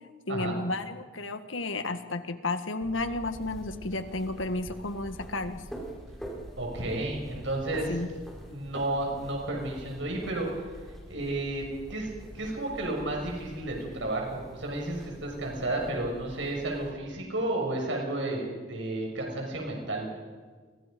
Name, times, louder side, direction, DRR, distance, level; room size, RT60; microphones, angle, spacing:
voice 1, 0.3-5.6 7.9-8.1, left 2 dB, 80° left, 8 dB, 1.7 m, -32 dB
sound 1, 2.8-16.9, equal, ahead, 4.8 m, -45 dB
voice 2, 6.6-7.9 8.5-10.7 11.1-12.1 12.3-20.1, right 2 dB, 70° right, 0 dB, 6.5 m, -32 dB
29.5 x 24.5 x 5.3 m, 1.5 s
head